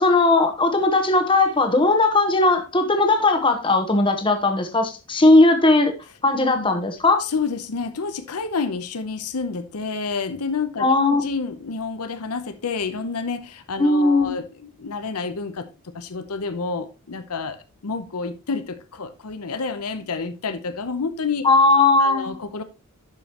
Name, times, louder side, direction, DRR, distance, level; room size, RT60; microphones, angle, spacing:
voice 1, 0.0-5.9 6.2-7.2 10.8-11.2 13.8-14.3 21.4-22.4, left 2 dB, 20° left, 1.1 m, -18 dB
voice 2, 7.2-15.7 15.9-17.6 17.8-21.5 22.0-22.6, left 4 dB, 85° left, 0.8 m, -29 dB
11.5 x 5.2 x 2.9 m
head